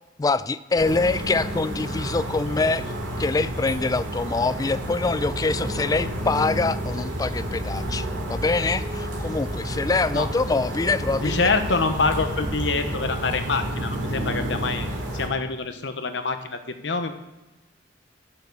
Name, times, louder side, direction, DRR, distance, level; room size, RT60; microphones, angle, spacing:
voice 1, 0.2-2.8 3.2-11.5, left 3 dB, 20° left, 15 dB, 0.3 m, -24 dB
sound 1, 0.8-15.3, equal, 85° right, 2.6 m, -30 dB
voice 2, 11.2-14.9 15.1-17.1, left 4 dB, 70° left, 7 dB, 1.0 m, -26 dB
11.0 x 7.0 x 6.7 m, 1.1 s
head